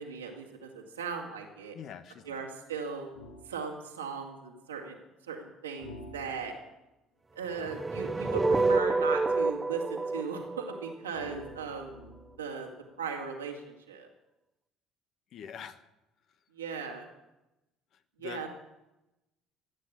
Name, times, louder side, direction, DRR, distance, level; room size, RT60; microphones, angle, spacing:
voice 1, 0.0-1.7 2.2-3.1 3.5-5.0 5.3-6.5 7.4-11.9 12.4-12.7 13.0-14.1 16.5-17.1 18.2-18.5, right 5 dB, 85° right, 1 dB, 2.4 m, -37 dB
voice 2, 1.7-2.4 15.3-15.8 18.2-18.5, left 8 dB, 55° left, 10 dB, 1.2 m, -44 dB
sound 1, 3.1-3.6 5.8-6.7 8.5-9.6 11.1-12.5, left 1 dB, 80° left, 1.8 m, -49 dB
sound 2, 7.5-11.6, right 3 dB, 20° right, 0.6 m, -29 dB
16.0 x 9.4 x 8.7 m, 0.96 s
figure-of-eight pair, 55°, 0 cm